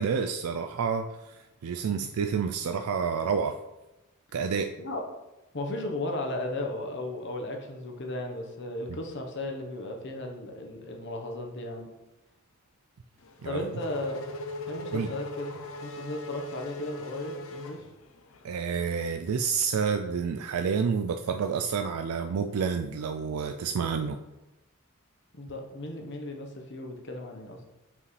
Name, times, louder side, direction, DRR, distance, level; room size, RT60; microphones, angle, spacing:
voice 1, 0.0-3.6 4.3-4.7 13.4-13.6 14.9-15.1 18.4-24.2, right 6 dB, 85° right, 6 dB, 0.4 m, -29 dB
voice 2, 5.5-11.9 13.4-14.2 14.7-15.5 15.8-17.8 25.3-27.6, left 1 dB, 55° left, 2 dB, 1.1 m, -35 dB
Race car auto racing / Accelerating revving vroom, 13.2-18.5, left 1 dB, 75° left, 0.6 m, -40 dB
7.4 x 5.4 x 3.2 m, 0.99 s
head